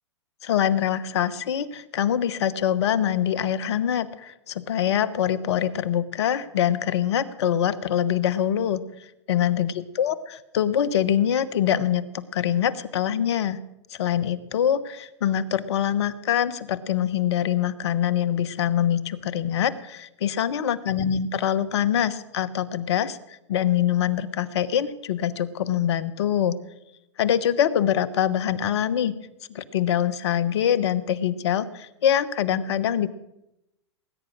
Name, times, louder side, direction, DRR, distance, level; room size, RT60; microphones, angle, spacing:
voice 1, 0.4-13.6 13.9-26.6 27.2-29.2 29.5-33.1, left 10 dB, 65° left, 16 dB, 1.1 m, -24 dB
19.5 x 9.9 x 6.3 m, 0.87 s
hypercardioid pair, 110°, 15 cm